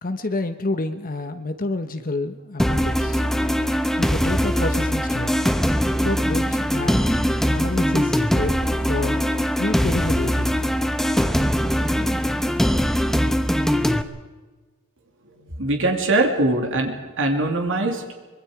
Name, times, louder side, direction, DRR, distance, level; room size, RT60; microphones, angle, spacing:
voice 1, 0.0-3.2 4.0-5.3 6.0-7.1 7.5-9.2 9.6-10.6, left 2 dB, 40° left, 8 dB, 1.1 m, -28 dB
sound 1, 2.6-14.0, equal, ahead, 0.9 m, -21 dB
voice 2, 15.4-18.0, right 2 dB, 65° right, 3 dB, 2.5 m, -22 dB
24.5 x 22.0 x 4.9 m, 1.3 s
head